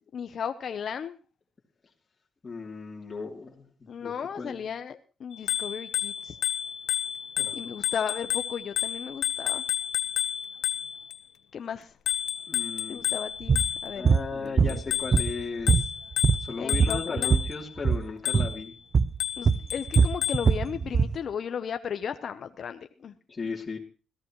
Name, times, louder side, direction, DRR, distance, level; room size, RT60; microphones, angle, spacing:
voice 1, 0.1-1.2 3.9-6.4 7.5-9.6 11.5-12.0 12.9-14.8 16.6-17.3 19.4-23.1, left 7 dB, 55° left, 8 dB, 0.8 m, -35 dB
voice 2, 2.4-3.6 4.0-4.7 7.4-7.7 12.5-13.0 13.9-15.8 16.4-18.7 23.3-23.8, left 4 dB, 30° left, -2 dB, 3.0 m, -36 dB
Bicycle bell, 5.3-11.2 12.1-14.2 14.7-17.7 18.3-18.7 19.2-20.5, left 10 dB, 75° left, 1.1 m, -31 dB
sound 1, 13.5-13.7 14.0-14.3 14.6-15.4 15.7-17.5 17.8-18.0 18.3-18.5 18.9-19.2 19.5-21.2, right 5 dB, 40° right, 0.7 m, -22 dB
21.5 x 15.5 x 3.1 m, 0.36 s
cardioid pair, 90°, 0 cm